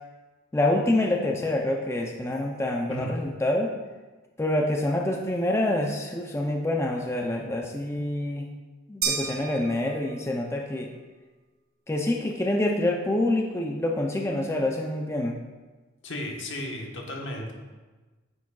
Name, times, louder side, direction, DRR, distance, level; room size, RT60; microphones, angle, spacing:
voice 1, 0.5-3.7 4.4-8.5 8.9-10.9 11.9-15.4, left 1 dB, 15° left, 1 dB, 0.5 m, -26 dB
sound 1, 9.0-10.5, right 5 dB, 50° right, 1.0 m, -32 dB
voice 2, 16.0-17.5, left 1 dB, 65° left, 0 dB, 1.3 m, -34 dB
9.3 x 7.3 x 2.3 m, 1.3 s
head